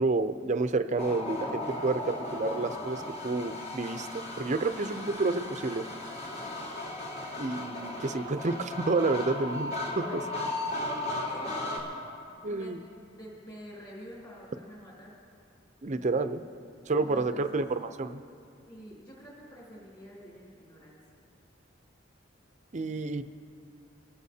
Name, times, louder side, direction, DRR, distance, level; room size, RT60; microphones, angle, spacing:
voice 1, 0.0-5.8 7.4-10.2 12.4-12.8 15.8-16.4 16.9-18.2 22.7-23.2, right 3 dB, 40° right, 9 dB, 0.5 m, -30 dB
sound 1, 1.0-11.8, left 2 dB, 50° left, 3.2 m, -36 dB
voice 2, 11.2-12.0 12.4-12.8 13.1-15.1 17.0-17.6 18.7-21.2, equal, 25° left, -7 dB, 3.6 m, -48 dB
24.5 x 14.5 x 2.8 m, 2.6 s
head